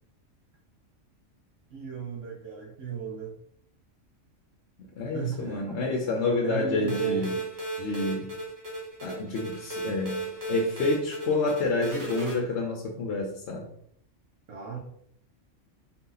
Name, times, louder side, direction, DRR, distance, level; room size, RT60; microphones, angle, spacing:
voice 1, 1.7-3.3 5.1-5.8 6.2-7.5 14.5-14.8, right 8 dB, 70° right, -3 dB, 1.1 m, -35 dB
voice 2, 5.0-7.3 7.8-8.3 9.0-13.7, left 3 dB, 60° left, 1 dB, 0.9 m, -29 dB
sound 1, 6.9-12.4, right 2 dB, 20° right, 0.8 m, -35 dB
4.1 x 2.8 x 3.8 m, 0.68 s
omnidirectional pair, 1.4 m